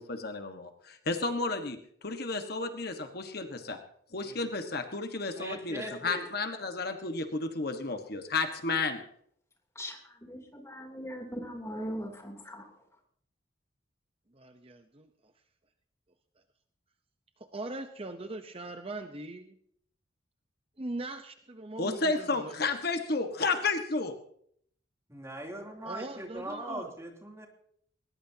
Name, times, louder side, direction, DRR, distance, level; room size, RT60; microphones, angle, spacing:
voice 1, 0.0-3.8 4.1-9.0 21.8-24.1, left 3 dB, 55° left, 6 dB, 1.5 m, -32 dB
voice 2, 5.3-6.3 25.1-27.5, right 1 dB, 15° right, 1 dB, 3.1 m, -40 dB
voice 3, 9.7-12.6, equal, 15° left, 2 dB, 3.2 m, -40 dB
voice 4, 14.3-15.1 17.4-19.5 20.8-22.5 25.8-26.9, right 2 dB, 30° right, 7 dB, 0.9 m, -40 dB
20.0 x 20.0 x 2.9 m, 0.65 s
head